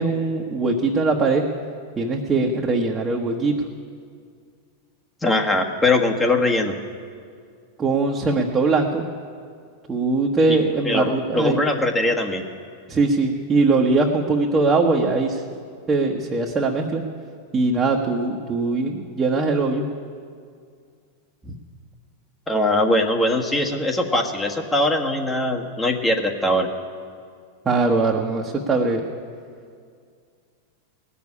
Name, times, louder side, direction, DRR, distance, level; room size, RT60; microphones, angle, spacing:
voice 1, 0.0-1.5 2.0-3.5 7.8-9.0 9.9-11.6 12.9-15.4 15.9-17.0 17.5-19.9 27.6-29.1, right 3 dB, 20° right, 0 dB, 1.3 m, -21 dB
voice 2, 5.2-6.7 10.8-12.4 22.5-26.7, left 1 dB, 15° left, 2 dB, 1.6 m, -21 dB
17.5 x 7.0 x 9.8 m, 2.2 s
hypercardioid pair, 110°, 0 cm